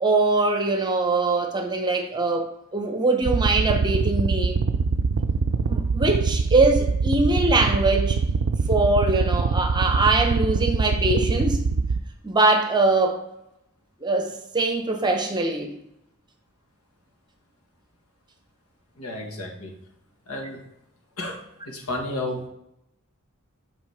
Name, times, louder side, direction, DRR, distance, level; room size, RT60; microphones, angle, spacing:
voice 1, 0.0-4.6 5.7-8.2 8.7-11.6 12.2-13.2 14.0-15.7, right 2 dB, 20° right, 0.8 m, -22 dB
sound 1, 3.2-12.0, right 4 dB, 60° right, 0.4 m, -23 dB
voice 2, 19.0-19.7 20.3-20.6 21.2-22.5, left 1 dB, 80° left, 1.7 m, -32 dB
8.1 x 5.7 x 3.5 m
head